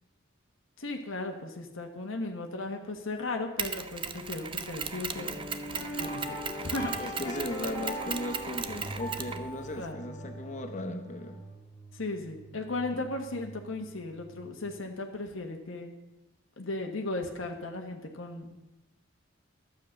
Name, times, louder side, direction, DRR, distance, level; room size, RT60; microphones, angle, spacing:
voice 1, 0.8-5.3 6.0-6.9 9.7-10.1 11.9-15.9 16.6-18.6, left 2 dB, 75° left, 3 dB, 1.3 m, -36 dB
Mechanisms, 3.6-9.9, right 6 dB, 25° right, 0.5 m, -37 dB
sound 1, 5.1-11.4, equal, 15° left, 3.0 m, -40 dB
voice 2, 7.0-11.4, left 1 dB, 35° left, 7 dB, 0.8 m, -37 dB
sound 2, 8.7-14.6, right 3 dB, 10° right, 1.8 m, -47 dB
11.5 x 7.5 x 6.4 m, 0.99 s
head